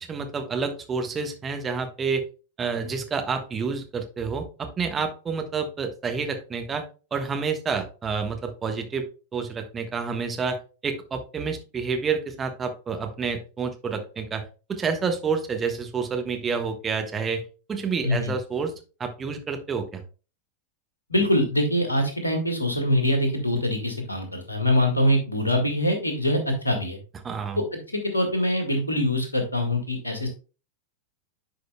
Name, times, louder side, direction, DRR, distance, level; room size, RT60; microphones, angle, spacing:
voice 1, 0.1-2.2 2.6-6.8 7.1-9.0 9.3-10.6 10.8-14.4 14.7-17.4 17.7-18.7 19.0-20.0 27.2-27.6, right 5 dB, 20° right, 5 dB, 1.2 m, -29 dB
voice 2, 18.0-18.3 21.1-27.0 27.9-30.3, left 1 dB, 80° left, 4 dB, 1.9 m, -24 dB
10.5 x 5.1 x 2.3 m, 0.34 s
figure-of-eight pair, 90°, 0 cm